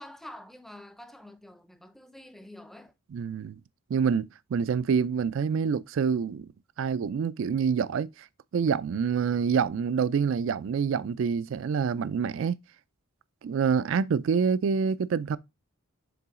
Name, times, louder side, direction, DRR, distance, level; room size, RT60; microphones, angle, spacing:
voice 1, 0.0-2.9, left 1 dB, ahead, 0.4 m, -47 dB
voice 2, 3.1-3.6 3.9-6.5 6.8-8.3 8.5-12.6 13.4-15.4, right 6 dB, 65° right, 0.3 m, -27 dB
7.0 x 3.8 x 3.6 m
head